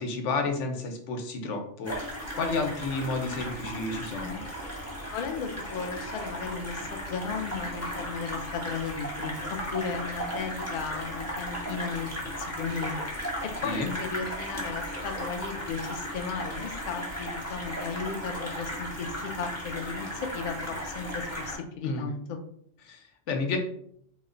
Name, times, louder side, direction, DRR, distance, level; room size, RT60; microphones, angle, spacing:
voice 1, 0.0-4.4 13.6-13.9 21.8-22.1 22.8-23.6, left 3 dB, 80° left, 4 dB, 0.9 m, -31 dB
sound 1, 1.8-21.6, equal, 15° left, 0.8 m, -36 dB
voice 2, 5.1-9.4 9.7-12.1 12.4-22.4, left 5 dB, 60° left, 4 dB, 0.5 m, -35 dB
2.9 x 2.1 x 3.7 m, 0.68 s
omnidirectional pair, 1.2 m